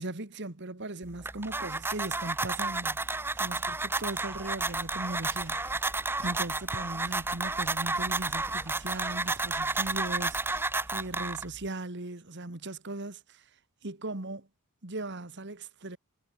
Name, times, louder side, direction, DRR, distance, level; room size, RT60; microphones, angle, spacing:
voice 1, 0.0-3.0 3.4-5.9 6.2-13.4 13.8-14.5 14.8-16.0, right 2 dB, 50° right, 1.8 m, -38 dB
sound 1, 1.0-11.7, right 3 dB, 10° right, 0.8 m, -32 dB
sound 2, 4.3-10.7, left 1 dB, 10° left, 4.5 m, -52 dB
head